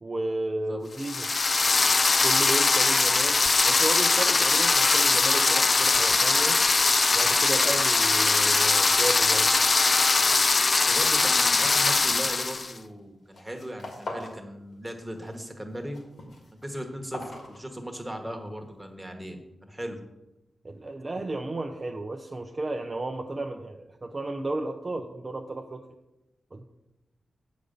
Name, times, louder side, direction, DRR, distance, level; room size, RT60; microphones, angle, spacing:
voice 1, 0.0-1.3 2.2-6.6 7.1-9.7 20.6-25.9 26.5-26.6, right 2 dB, 30° right, 3 dB, 0.6 m, -33 dB
sound 1, 1.0-12.7, left 3 dB, 40° left, 0.4 m, -21 dB
voice 2, 10.8-16.0 16.6-20.0, equal, 10° right, 3 dB, 1.3 m, -38 dB
sound 2, 12.7-13.0 13.3-14.4 14.7-15.4 15.7-18.2, left 2 dB, 70° left, 2.2 m, -41 dB
8.3 x 5.1 x 6.8 m, 0.94 s
wide cardioid pair, 110°, 0 cm